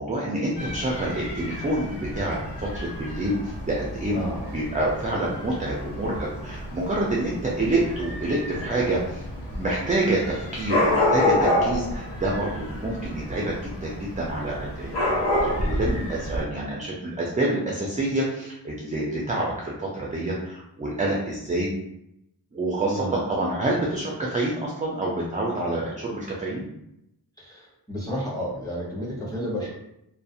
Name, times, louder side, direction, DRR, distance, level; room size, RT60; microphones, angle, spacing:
voice 1, 0.0-9.2 9.5-21.7 22.5-26.7, right 1 dB, 20° right, -3 dB, 0.3 m, -27 dB
Dog / Cat, 0.6-16.4, left 1 dB, 85° left, 0.7 m, -29 dB
voice 2, 4.1-4.5 22.8-23.2 27.4-29.7, equal, 10° left, -6 dB, 0.9 m, -32 dB
2.3 x 2.0 x 2.6 m, 0.83 s
wide cardioid pair, 85°, 41 cm